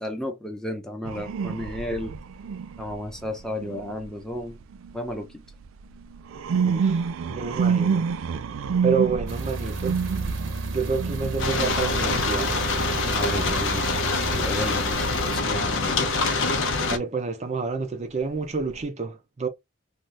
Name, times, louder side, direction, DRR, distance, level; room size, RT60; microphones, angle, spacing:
voice 1, 0.0-2.1 2.8-4.6 4.9-5.4 13.0-14.0 14.3-16.0, left 1 dB, 5° left, 0.7 m, -33 dB
sound 1, 1.0-5.2 5.6-13.5 18.3-18.8, right 6 dB, 90° right, 0.4 m, -29 dB
voice 2, 6.6-8.1 8.8-10.0 10.7-12.6 16.9-19.5, right 5 dB, 35° right, 0.5 m, -29 dB
sound 2, 9.3-15.4, right 3 dB, 70° right, 0.8 m, -32 dB
sound 3, 11.4-17.0, left 3 dB, 70° left, 0.6 m, -25 dB
2.7 x 2.4 x 3.2 m
head